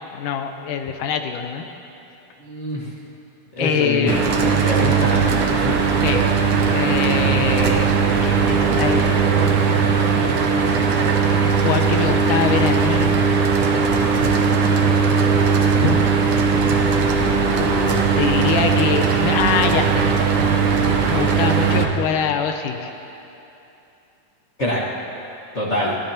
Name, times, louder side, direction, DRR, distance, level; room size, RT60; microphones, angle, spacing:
voice 1, 0.1-1.7 3.6-4.7 6.0-6.2 6.7-9.6 11.5-13.1 14.1-14.3 15.8-16.1 17.6-20.1 21.1-22.9, left 7 dB, 80° left, 6 dB, 2.3 m, -24 dB
voice 2, 2.4-2.8 3.6-4.1 4.4-5.7 10.7-10.9 24.6-24.8 25.5-26.0, equal, 50° left, -6 dB, 0.8 m, -25 dB
Mechanical fan, 4.1-21.9, right 5 dB, 70° right, 1.3 m, -18 dB
23.0 x 16.0 x 2.9 m, 2.9 s
omnidirectional pair, 3.8 m